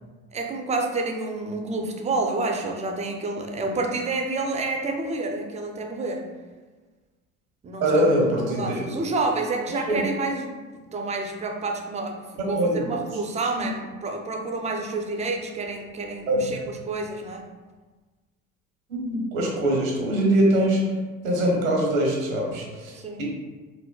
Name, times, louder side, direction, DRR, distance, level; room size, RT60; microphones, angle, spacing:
voice 1, 0.3-6.3 7.6-8.1 8.5-12.2 12.5-17.5 22.9-23.2, right 3 dB, 20° right, 2 dB, 0.3 m, -29 dB
voice 2, 7.8-8.8 12.5-12.8 16.3-16.4 18.9-20.8 21.2-23.2, right 1 dB, 85° right, -1 dB, 0.8 m, -22 dB
3.7 x 2.1 x 2.2 m, 1.3 s
hypercardioid pair, 70°, 40 cm